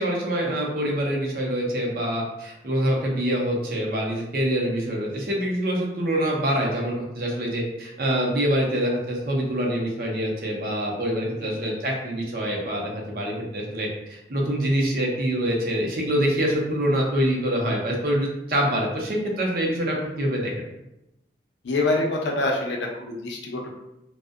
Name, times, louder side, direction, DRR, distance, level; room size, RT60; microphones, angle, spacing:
voice 1, 0.0-20.6, equal, 55° right, -1 dB, 0.5 m, -25 dB
voice 2, 21.6-23.7, left 2 dB, 90° left, 0 dB, 0.5 m, -26 dB
2.5 x 2.0 x 2.3 m, 0.89 s
head